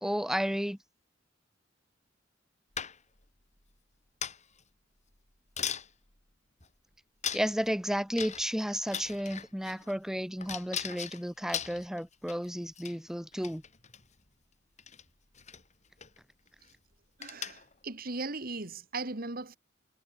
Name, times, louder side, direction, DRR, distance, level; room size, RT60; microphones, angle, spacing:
voice 1, 0.0-0.8 7.3-13.6, equal, 5° right, 1.5 m, -32 dB
sound 1, 2.8-3.2 4.2-4.6 5.1-5.2 5.6-5.9 6.6-6.7 7.2-7.7 8.2-8.6 8.9-9.9 10.4-12.5 12.8-13.0 13.3-14.0 14.8-15.0 15.3-15.6 16.0-16.2 16.5-16.7 17.2-17.7, left 8 dB, 40° left, 5.4 m, -38 dB
voice 2, 17.2-19.6, right 3 dB, 50° right, 2.4 m, -38 dB
head